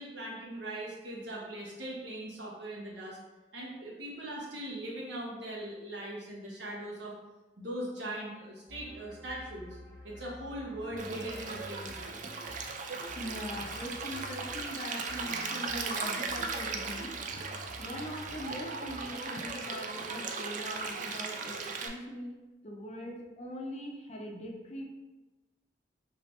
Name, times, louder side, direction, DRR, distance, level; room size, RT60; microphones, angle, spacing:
voice 1, 0.0-3.2 3.5-7.1 7.6-9.8 10.0-12.2, right 1 dB, 85° right, -4 dB, 1.0 m, -40 dB
sound 1, 8.7-19.5, left 1 dB, 10° left, 1.0 m, -50 dB
Stream, 11.0-21.9, right 4 dB, 45° right, 0.4 m, -37 dB
voice 2, 13.2-17.1 17.8-22.4 22.6-24.8, equal, 40° left, 1 dB, 0.5 m, -41 dB
3.2 x 2.8 x 3.2 m, 1.1 s
head